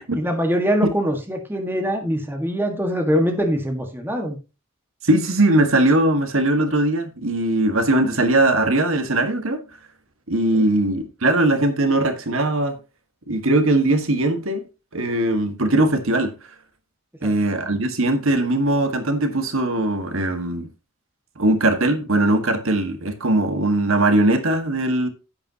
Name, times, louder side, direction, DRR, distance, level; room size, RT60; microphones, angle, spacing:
voice 1, 0.1-4.4 10.5-10.6, equal, 10° right, 1.6 m, -23 dB
voice 2, 5.0-9.6 10.3-12.8 13.3-14.6 14.9-16.3 17.2-20.7 21.4-25.1, right 1 dB, 70° right, 1.7 m, -20 dB
10.5 x 8.9 x 2.9 m
head